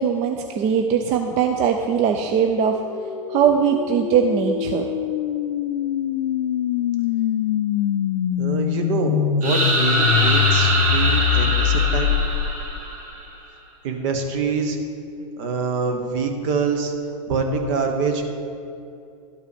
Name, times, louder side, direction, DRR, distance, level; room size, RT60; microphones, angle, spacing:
voice 1, 0.0-2.8 3.3-4.9, right 7 dB, 40° right, 5 dB, 0.5 m, -20 dB
sound 1, 2.7-12.8, left 10 dB, 85° left, 0.4 m, -23 dB
voice 2, 8.4-12.1 13.8-14.8 15.4-16.9 17.3-18.2, right 4 dB, 60° right, 4 dB, 1.3 m, -25 dB
sound 2, 9.4-13.2, right 2 dB, 80° right, 2.1 m, -23 dB
12.0 x 4.7 x 5.1 m, 2.7 s
hypercardioid pair, 120°, 18 cm